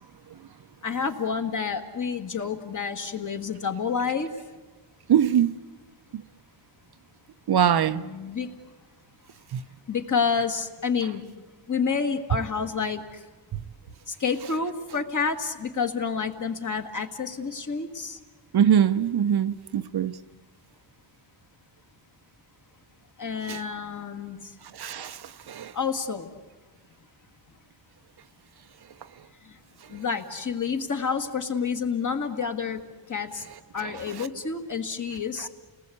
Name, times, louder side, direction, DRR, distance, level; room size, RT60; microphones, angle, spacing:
voice 1, 0.8-4.3 7.9-8.5 9.9-11.2 11.7-13.2 14.1-18.2 23.2-24.6 25.7-26.3 29.4-29.6 29.9-32.8 33.1-33.5 33.7-35.5, left 5 dB, 40° left, 1.8 m, -29 dB
voice 2, 5.1-5.6 7.5-8.0 9.5-9.6 18.5-20.1 23.5-23.6 24.7-25.7, right 9 dB, 50° right, 0.7 m, -22 dB
29.5 x 19.0 x 8.5 m
wide cardioid pair, 130°, 48 cm